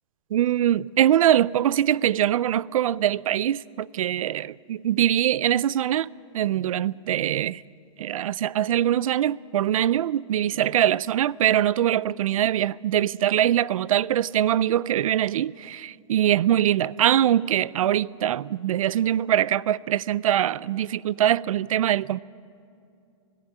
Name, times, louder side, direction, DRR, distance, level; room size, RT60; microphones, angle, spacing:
voice 1, 0.3-7.6 8.0-22.2, right 11 dB, 85° right, 0.5 m, -23 dB
18.5 x 16.0 x 9.1 m
supercardioid pair, 165°, 17 cm